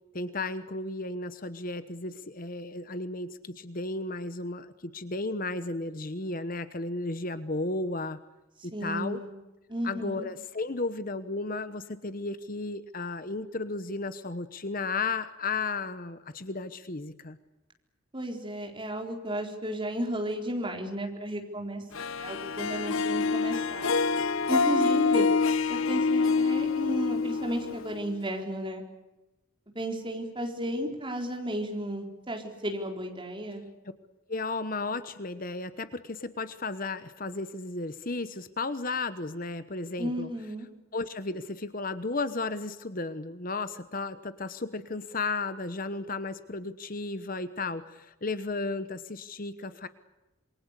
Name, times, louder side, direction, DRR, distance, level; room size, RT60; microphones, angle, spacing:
voice 1, 0.1-8.2 8.6-9.2 9.8-17.4 34.3-40.3 40.9-49.9, left 3 dB, 40° left, 12 dB, 1.0 m, -34 dB
voice 2, 8.7-9.3 9.7-10.3 18.1-21.8 22.1-23.9 24.5-25.3 25.7-28.8 29.7-33.6 40.0-40.7, right 1 dB, 20° right, 2 dB, 4.2 m, -33 dB
Harp, 21.9-28.2, left 4 dB, 70° left, 0.9 m, -26 dB
27.5 x 23.5 x 8.3 m, 1.0 s
head